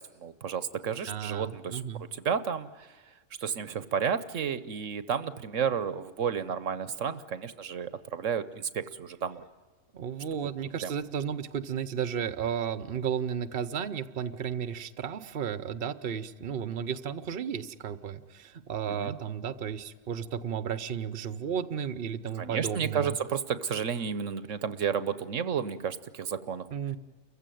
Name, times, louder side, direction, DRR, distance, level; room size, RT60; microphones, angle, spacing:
voice 1, 0.0-1.8 2.1-3.0 3.4-9.4 10.3-10.5 10.8-10.9 19.0-19.2 22.4-26.7, right 7 dB, 65° right, 14 dB, 1.2 m, -32 dB
voice 2, 1.1-2.0 9.9-23.2 26.7-27.0, right 8 dB, 50° right, 13 dB, 1.0 m, -33 dB
29.0 x 15.5 x 9.2 m, 1.4 s
omnidirectional pair, 1.4 m